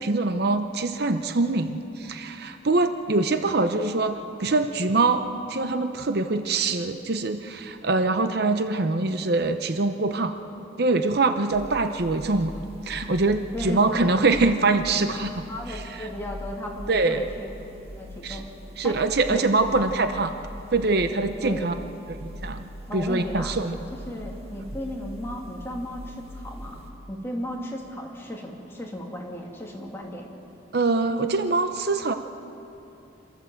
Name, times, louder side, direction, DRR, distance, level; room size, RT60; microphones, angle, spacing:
voice 1, 0.0-10.3 10.8-12.5 12.9-15.4 16.9-17.2 18.2-18.4 18.8-20.3 20.7-21.7 22.2-22.6 22.9-23.8 30.7-32.1, right 3 dB, 55° right, 8 dB, 0.8 m, -24 dB
sound 1, 11.5-26.9, equal, 35° right, 1.7 m, -41 dB
voice 2, 13.5-13.9 14.2-14.4 15.5-17.5 18.0-18.5 18.8-19.0 19.3-19.7 21.4-21.9 22.9-23.5 23.9-26.8 27.1-30.3, equal, 15° left, -2 dB, 2.6 m, -35 dB
27.0 x 13.5 x 7.7 m, 3.0 s
head